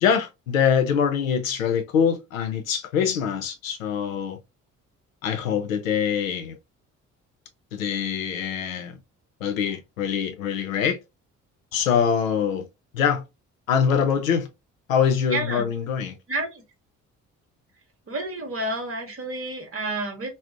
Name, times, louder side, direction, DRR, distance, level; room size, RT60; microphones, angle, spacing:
voice 1, 0.0-4.4 5.2-6.6 7.7-8.9 9.4-11.0 11.7-12.7 12.9-13.2 13.7-14.5 14.9-16.2, left 7 dB, 90° left, 0.5 m, -24 dB
voice 2, 15.3-15.7 16.3-16.6 18.1-20.3, right 2 dB, 35° right, 1.0 m, -30 dB
2.5 x 2.0 x 2.4 m
figure-of-eight pair, 45°, 39 cm